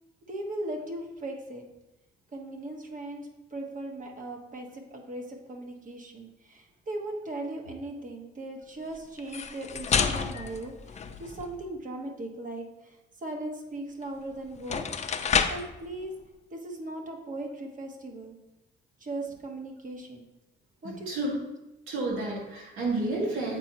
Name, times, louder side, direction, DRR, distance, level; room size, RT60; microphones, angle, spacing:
voice 1, 0.3-1.6 2.3-14.9 15.5-16.1 16.5-18.4 19.0-20.3 20.8-21.3, right 2 dB, 40° right, 2 dB, 1.2 m, -38 dB
sound 1, 9.2-11.6 14.0-14.1 14.6-15.8, left 6 dB, 35° left, 0.5 m, -29 dB
voice 2, 21.9-23.6, right 2 dB, 85° right, -3 dB, 1.8 m, -30 dB
8.0 x 4.4 x 2.9 m, 0.97 s
cardioid pair, 90°, 20 cm